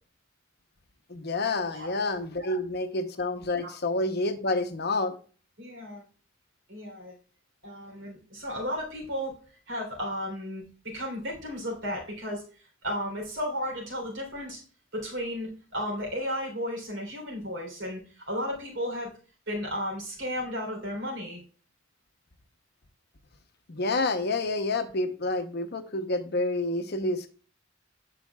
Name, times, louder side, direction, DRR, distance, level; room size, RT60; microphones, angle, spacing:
voice 1, 1.1-5.2 23.7-27.3, left 2 dB, 55° left, 8 dB, 0.8 m, -28 dB
voice 2, 5.6-6.0 6.7-7.1 7.6-9.3 9.7-12.4 12.8-14.6 14.9-19.1 19.5-21.4, equal, 65° right, 0 dB, 3.4 m, -34 dB
14.5 x 5.0 x 2.3 m, 0.39 s
head